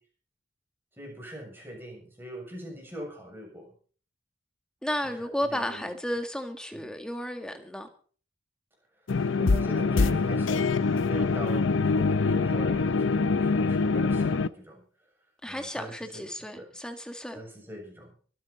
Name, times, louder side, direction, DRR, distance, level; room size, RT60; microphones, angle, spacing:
voice 1, 1.0-3.7 5.2-5.9 6.7-6.9 9.3-14.8 15.5-16.3 16.6-16.7 17.3-18.1, right 1 dB, 10° right, 7.0 m, -42 dB
voice 2, 4.8-7.9 15.4-17.4, equal, 5° left, 1.9 m, -33 dB
sound 1, 9.1-14.5, left 4 dB, 85° left, 0.6 m, -24 dB
24.0 x 9.4 x 4.3 m
head